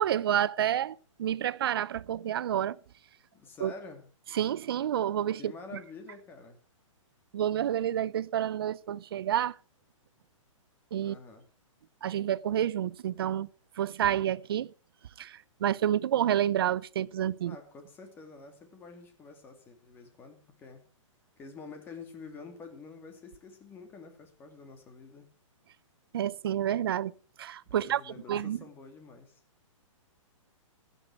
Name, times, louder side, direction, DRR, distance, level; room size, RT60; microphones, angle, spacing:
voice 1, 0.0-2.8 3.6-3.7 4.3-5.5 7.3-9.6 10.9-11.2 12.0-13.5 13.8-14.7 15.2-17.6 26.1-27.1 27.4-28.6, right 10 dB, 45° right, 0.6 m, -29 dB
voice 2, 3.3-4.1 5.4-6.6 11.0-11.4 17.5-20.8 21.4-25.3 27.7-29.4, left 4 dB, 10° left, 2.3 m, -48 dB
16.0 x 12.0 x 4.6 m
hypercardioid pair, 170°, 17 cm